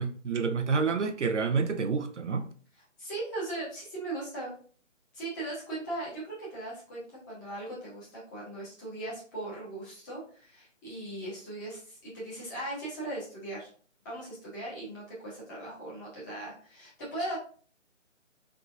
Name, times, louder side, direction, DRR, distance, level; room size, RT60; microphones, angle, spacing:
voice 1, 0.0-2.5, right 5 dB, 65° right, 0.5 m, -28 dB
voice 2, 3.0-4.5 5.1-7.0 7.3-13.7 14.0-17.4, right 2 dB, 15° left, 1.1 m, -38 dB
3.6 x 3.5 x 2.6 m
figure-of-eight pair, 150°, 39 cm